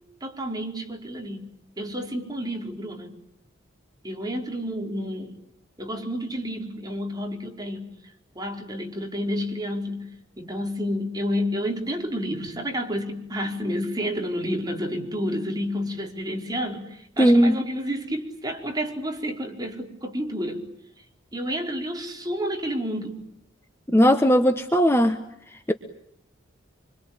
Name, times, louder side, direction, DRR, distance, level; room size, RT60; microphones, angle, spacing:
voice 1, 0.2-1.5 1.8-3.1 4.0-5.4 5.8-7.9 8.3-10.1 10.4-20.7 21.3-23.2, equal, 20° right, 2 dB, 4.7 m, -30 dB
voice 2, 17.2-17.6 23.9-25.2, equal, 15° left, 7 dB, 1.3 m, -18 dB
26.5 x 25.5 x 8.9 m, 0.74 s
head